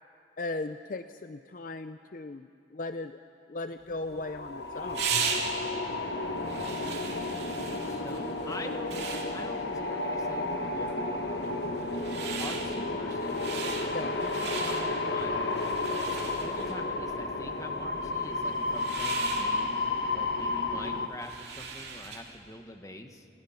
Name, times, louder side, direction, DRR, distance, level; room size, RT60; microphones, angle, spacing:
voice 1, 0.4-3.2 3.5-5.0 13.9-14.1, left 2 dB, 45° left, 10 dB, 0.5 m, -37 dB
sound 1, 3.9-22.4, right 5 dB, 65° right, 2.8 m, -39 dB
sound 2, 4.0-21.1, left 2 dB, 75° left, 1.6 m, -32 dB
voice 2, 7.8-11.5 12.4-13.5 13.9-15.5 16.4-23.3, left 1 dB, 20° left, 5 dB, 1.3 m, -45 dB
30.0 x 25.0 x 5.8 m, 2.6 s
head